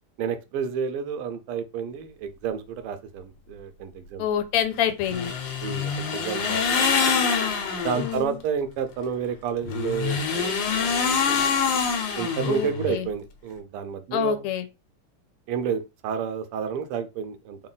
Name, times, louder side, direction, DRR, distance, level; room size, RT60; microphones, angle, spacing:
voice 1, 0.2-4.3 5.6-7.2 7.8-11.5 12.1-14.4 15.5-17.6, right 7 dB, 90° right, 1.6 m, -30 dB
voice 2, 4.2-5.3 7.9-8.4 12.4-13.1 14.1-14.7, left 9 dB, 85° left, 1.5 m, -26 dB
sound 1, 5.0-8.2 9.6-13.0, left 6 dB, 65° left, 1.3 m, -25 dB
3.9 x 2.1 x 3.9 m
omnidirectional pair, 2.4 m